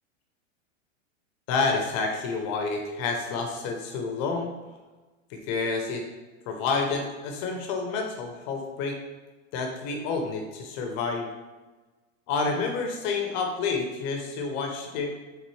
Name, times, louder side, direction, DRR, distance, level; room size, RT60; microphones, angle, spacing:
voice 1, 1.5-4.5 5.3-6.1 6.5-9.0 9.5-11.3 12.3-15.1, left 4 dB, 40° left, 3 dB, 0.7 m, -29 dB
4.0 x 3.9 x 3.1 m, 1.2 s
hypercardioid pair, 125°, 38 cm